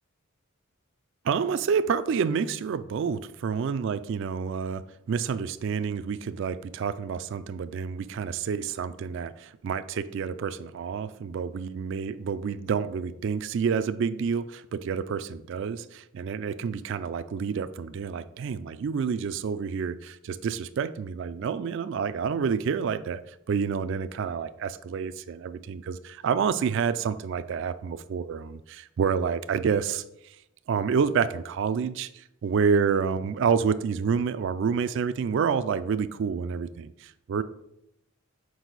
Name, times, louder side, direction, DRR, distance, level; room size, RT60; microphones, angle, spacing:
voice 1, 1.2-30.4 30.7-37.4, right 6 dB, 60° right, 13 dB, 0.3 m, -28 dB
6.3 x 4.9 x 3.9 m, 0.81 s
head